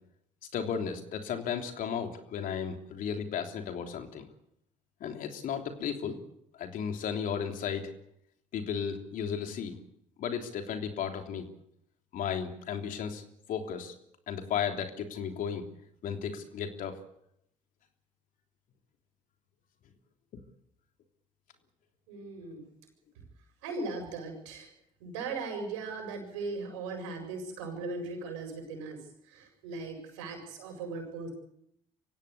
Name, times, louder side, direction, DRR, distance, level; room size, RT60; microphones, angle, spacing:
voice 1, 0.5-4.3 5.0-6.2 6.6-7.9 8.5-9.8 10.2-11.5 12.1-13.2 13.5-13.9 14.3-15.6 16.0-17.0, left 7 dB, 60° left, 5 dB, 3.3 m, -34 dB
voice 2, 22.1-22.6 23.6-24.7 25.0-31.3, right 3 dB, 80° right, 4 dB, 7.5 m, -38 dB
24.5 x 16.5 x 8.4 m, 0.76 s
hypercardioid pair, 60°, 16 cm